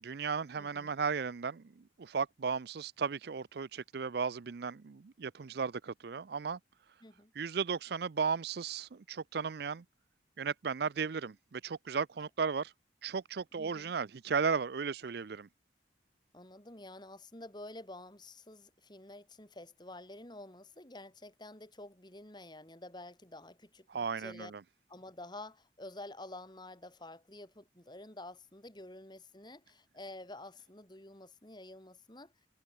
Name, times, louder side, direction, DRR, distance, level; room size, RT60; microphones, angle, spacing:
voice 1, 0.0-6.6 7.3-9.8 10.4-12.7 13.0-15.5 23.9-24.6, right 5 dB, 55° right, 0.5 m, -35 dB
voice 2, 0.6-0.9 7.0-7.3 13.5-13.9 16.3-24.5 24.9-32.3, left 2 dB, 25° left, 3.3 m, -49 dB
head